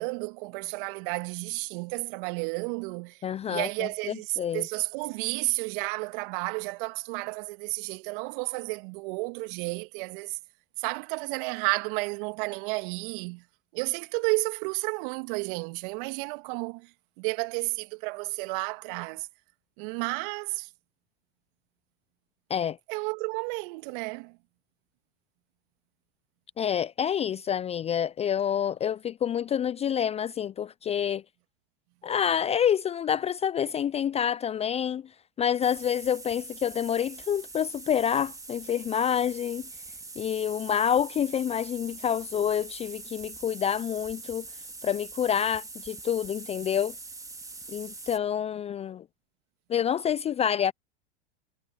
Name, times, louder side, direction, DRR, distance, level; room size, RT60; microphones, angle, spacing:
voice 1, 0.0-10.4 10.8-13.4 13.7-16.9 17.2-19.3 19.8-20.7 22.9-24.4, right 30 dB, 55° right, 2.0 m, -32 dB
voice 2, 3.2-4.7 22.5-22.8 26.6-31.2 32.0-35.1 35.4-39.6 40.2-44.5 44.8-46.9 47.7-49.0 49.7-50.7, left 8 dB, 20° left, 0.5 m, -28 dB
sound 1, 35.6-48.2, right 3 dB, 10° right, 2.7 m, -43 dB
hypercardioid pair, 90°, 31 cm